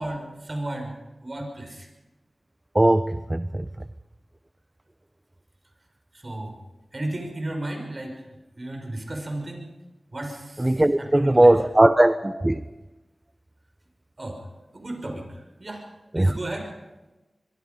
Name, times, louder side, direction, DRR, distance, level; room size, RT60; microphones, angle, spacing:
voice 1, 0.0-1.9 6.1-6.5 6.9-8.3 8.6-9.7 10.1-11.6 12.2-12.3 14.2-14.4 14.7-15.3 15.6-15.8 16.1-16.7, right 1 dB, 40° right, 3 dB, 5.7 m, -34 dB
voice 2, 2.7-3.7 10.6-12.2 12.4-12.6 16.1-16.3, right 1 dB, 20° right, 12 dB, 0.8 m, -18 dB
23.5 x 23.5 x 5.4 m, 1.1 s
wide cardioid pair, 55°, 0 cm